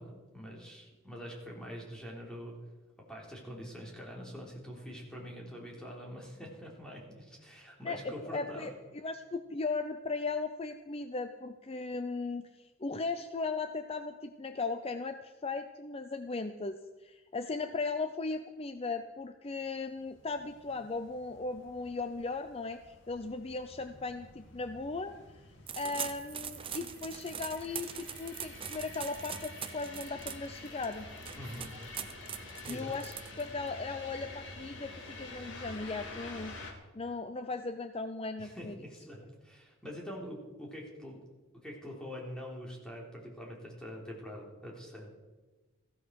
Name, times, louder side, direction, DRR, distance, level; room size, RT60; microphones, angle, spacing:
voice 1, 0.0-2.5 3.1-8.7 31.4-31.7 32.7-32.9 38.4-41.2 41.6-45.1, equal, 5° left, -2 dB, 3.5 m, -44 dB
voice 2, 7.8-8.7 9.0-25.2 25.8-31.1 32.7-36.6 36.9-38.8, left 3 dB, 30° left, 9 dB, 0.6 m, -37 dB
sound 1, 20.0-36.7, left 2 dB, 65° left, 2.4 m, -49 dB
sound 2, 25.7-33.7, right 8 dB, 25° right, 0.6 m, -42 dB
16.0 x 15.0 x 4.7 m, 1.2 s
head